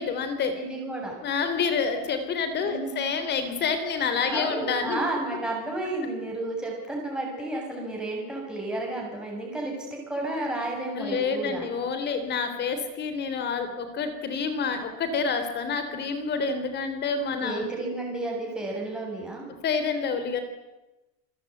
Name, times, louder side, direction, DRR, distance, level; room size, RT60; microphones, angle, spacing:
voice 1, 0.0-0.5 1.2-5.0 11.0-17.7 19.6-20.4, left 5 dB, 25° left, 9 dB, 3.4 m, -28 dB
voice 2, 0.6-1.2 2.6-3.1 4.3-11.7 17.4-19.5, right 2 dB, ahead, -2 dB, 7.3 m, -32 dB
28.0 x 23.0 x 9.2 m, 1.0 s
cardioid pair, 180°, 39 cm